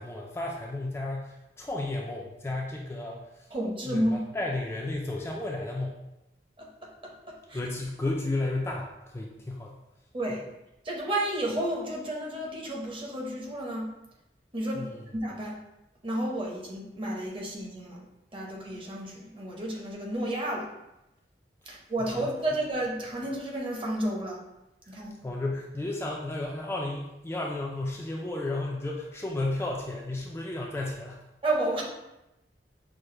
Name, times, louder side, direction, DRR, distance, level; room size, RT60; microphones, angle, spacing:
voice 1, 0.0-3.5 3.9-6.1 7.5-9.8 14.7-15.0 22.1-22.3 24.9-31.2, left 2 dB, 15° left, -2 dB, 0.3 m, -33 dB
voice 2, 3.5-4.2 6.6-7.6 10.1-10.5 10.8-13.9 14.5-15.6 16.0-18.0 18.3-20.7 21.7-24.4 24.9-25.1 31.4-31.8, right 1 dB, 30° right, -2 dB, 0.8 m, -31 dB
6.1 x 2.1 x 3.2 m, 0.91 s
head